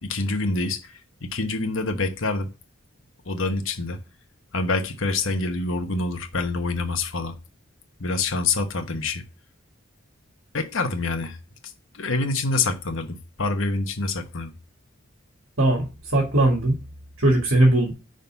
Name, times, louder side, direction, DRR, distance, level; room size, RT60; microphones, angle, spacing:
voice 1, 0.0-2.5 3.2-4.0 4.5-7.3 8.0-9.2 10.5-11.4 11.6-14.5, left 3 dB, 70° left, 1.1 m, -26 dB
voice 2, 15.6-16.7 17.2-17.9, right 1 dB, 65° right, 1.9 m, -19 dB
5.4 x 3.9 x 5.7 m
head